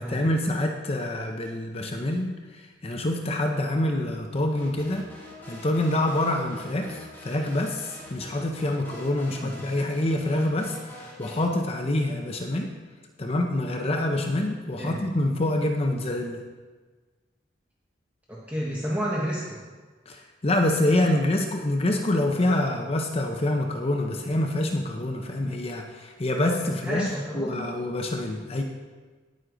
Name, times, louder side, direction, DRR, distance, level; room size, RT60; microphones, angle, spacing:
voice 1, 0.0-5.0 5.5-12.7 13.2-16.4 20.1-28.6, left 1 dB, 30° left, 3 dB, 0.7 m, -26 dB
sound 1, 4.6-11.4, left 1 dB, 10° left, 1.5 m, -44 dB
voice 2, 9.2-9.6 14.8-15.0 18.3-19.6 26.8-27.7, equal, 10° right, -6 dB, 1.1 m, -31 dB
9.8 x 9.3 x 3.9 m, 1.4 s
head